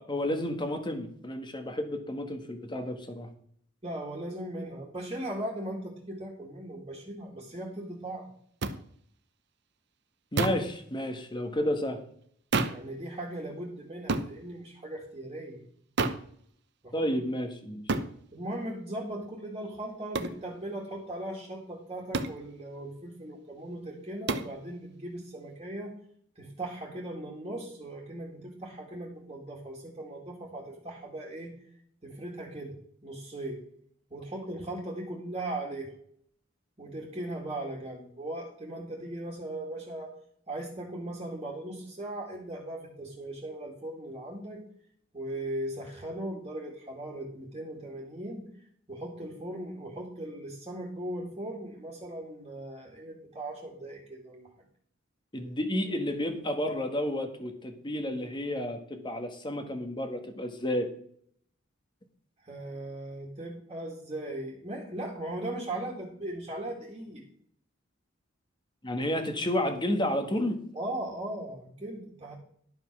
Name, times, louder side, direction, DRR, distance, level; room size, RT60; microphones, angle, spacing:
voice 1, 0.0-3.3 10.3-12.0 16.9-17.8 55.3-60.9 68.8-70.6, left 1 dB, 25° left, 7 dB, 1.4 m, -31 dB
voice 2, 3.8-8.3 12.7-15.6 16.8-17.1 18.3-25.9 26.4-31.5 32.0-32.8 33.0-33.6 34.1-35.9 36.8-40.1 40.5-44.6 45.1-48.5 48.9-54.5 62.4-67.2 70.7-72.4, right 1 dB, 25° right, -4 dB, 2.1 m, -38 dB
sound 1, 8.6-8.8 10.4-10.7 12.5-12.9 14.1-14.3 16.0-16.3 17.9-18.1 20.1-20.4 22.1-22.4 24.3-24.5, right 3 dB, 60° right, 0.8 m, -29 dB
11.5 x 5.5 x 6.0 m, 0.63 s
head